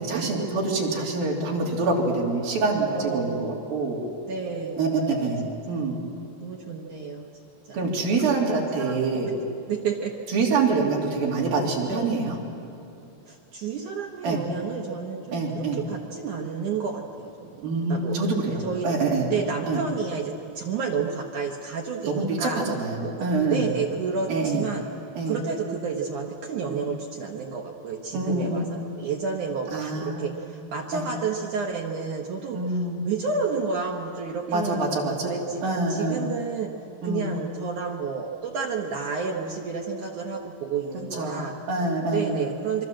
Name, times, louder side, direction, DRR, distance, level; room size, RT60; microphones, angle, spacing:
voice 1, 0.0-4.0 4.8-6.0 7.7-9.3 10.3-12.4 14.2-14.4 15.3-15.8 17.6-19.3 19.7-19.8 22.0-22.5 22.8-23.7 24.3-24.7 25.2-25.4 26.7-26.9 28.1-28.6 29.7-30.2 30.9-31.1 32.5-33.0 34.5-35.3 35.6-36.3 37.0-37.3 41.1-42.4, right 3 dB, 55° right, -2 dB, 4.8 m, -26 dB
voice 2, 2.9-3.7 4.3-5.3 5.7-5.8 6.4-7.3 7.7-7.8 8.5-9.2 9.7-10.1 11.9-12.1 13.3-18.2 18.6-19.0 19.3-22.6 23.0-24.8 25.3-36.7 37.0-41.5 42.1-42.8, right 5 dB, 70° right, 1 dB, 1.9 m, -31 dB
27.0 x 23.5 x 7.6 m, 2.7 s
omnidirectional pair, 5.2 m